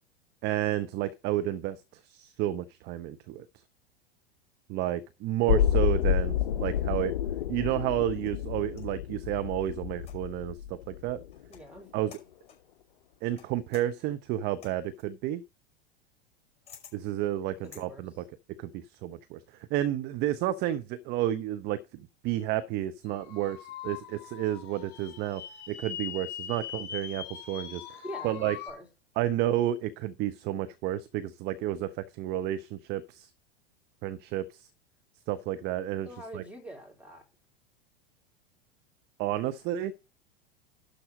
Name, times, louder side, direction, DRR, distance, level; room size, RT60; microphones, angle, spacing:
voice 1, 0.4-3.4 4.7-7.2 7.5-11.2 11.9-12.1 13.2-15.4 16.9-18.1 18.6-19.4 19.7-21.8 22.2-28.6 29.2-33.3 34.0-34.7 35.3-36.1 36.3-36.4 39.2-39.9, right 13 dB, 35° right, 0.8 m, -31 dB
sound 1, 5.5-11.4 11.8-11.9, left 9 dB, 55° left, 0.6 m, -29 dB
sound 2, 8.1-9.0 10.0-10.5 11.3-11.7 12.1-12.7 13.4-17.9, left 7 dB, 20° left, 5.1 m, -54 dB
voice 2, 11.5-12.0 17.6-18.0 28.0-28.9 36.1-37.2, equal, 5° right, 3.7 m, -44 dB
sound 3, 23.1-28.7, left 9 dB, 35° left, 3.9 m, -41 dB
12.0 x 4.3 x 6.2 m
figure-of-eight pair, 90°, 30 cm